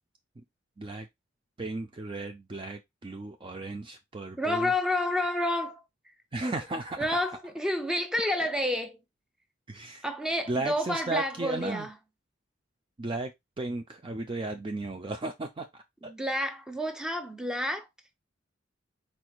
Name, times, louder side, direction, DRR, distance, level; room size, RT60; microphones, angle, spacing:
voice 1, 0.8-1.1 1.6-4.7 6.3-7.3 9.7-10.1 10.5-11.9 13.0-16.1, right 2 dB, 25° right, 0.5 m, -35 dB
voice 2, 4.4-5.8 7.0-9.0 10.0-11.9 16.0-17.9, left 1 dB, 5° right, 0.8 m, -29 dB
4.6 x 4.3 x 2.4 m
head